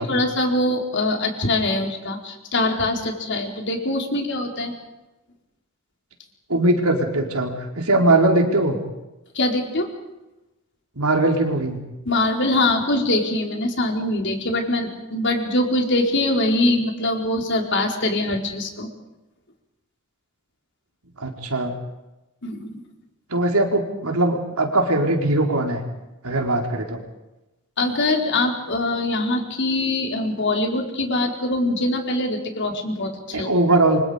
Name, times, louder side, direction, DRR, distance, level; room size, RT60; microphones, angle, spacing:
voice 1, 0.0-4.7 9.3-9.9 12.0-18.9 22.4-22.8 27.8-33.5, left 2 dB, 55° left, 3 dB, 4.4 m, -23 dB
voice 2, 6.5-8.8 11.0-11.8 21.2-21.7 23.3-25.8 26.2-27.0 33.3-34.0, right 2 dB, 90° right, 3 dB, 4.3 m, -20 dB
28.5 x 25.0 x 5.2 m, 1.0 s
head